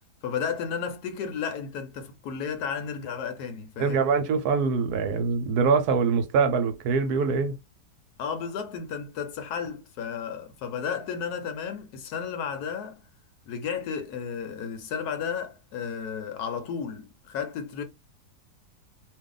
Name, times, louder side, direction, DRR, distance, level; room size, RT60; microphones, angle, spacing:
voice 1, 0.2-4.1 8.2-13.0 13.5-17.8, left 7 dB, 70° left, 1.1 m, -33 dB
voice 2, 3.8-7.5, right 5 dB, 70° right, 1.0 m, -24 dB
2.6 x 2.4 x 3.7 m
omnidirectional pair, 1.8 m